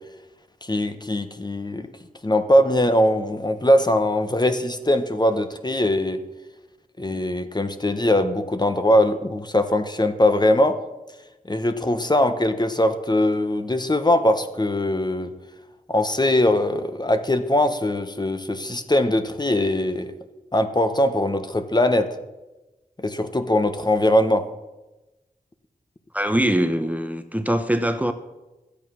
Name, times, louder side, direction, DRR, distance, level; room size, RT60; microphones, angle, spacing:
voice 1, 0.6-1.9 2.2-6.2 7.0-10.8 11.5-15.3 15.9-20.1 20.5-22.2 23.0-24.5, left 1 dB, 25° left, 8 dB, 1.1 m, -21 dB
voice 2, 26.1-28.1, right 1 dB, 10° right, 9 dB, 0.9 m, -22 dB
13.0 x 8.5 x 6.3 m, 1.1 s
cardioid pair, 55°, 16 cm